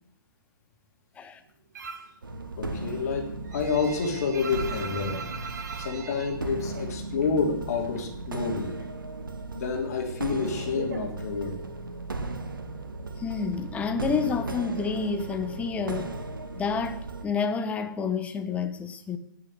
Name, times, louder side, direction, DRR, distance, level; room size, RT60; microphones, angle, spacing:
sound 1, 1.7-2.2 2.5-7.4 7.7-8.7 9.0-11.8, right 5 dB, 50° right, 2.2 m, -40 dB
sound 2, 2.2-17.2, right 2 dB, 70° right, 2.1 m, -36 dB
voice 1, 2.6-5.2 5.8-8.8 9.5-11.6, left 5 dB, 45° left, 3.2 m, -29 dB
voice 2, 13.2-16.2 16.6-19.2, left 5 dB, 10° left, 1.3 m, -29 dB
18.5 x 7.1 x 9.8 m
figure-of-eight pair, 120°, 12 cm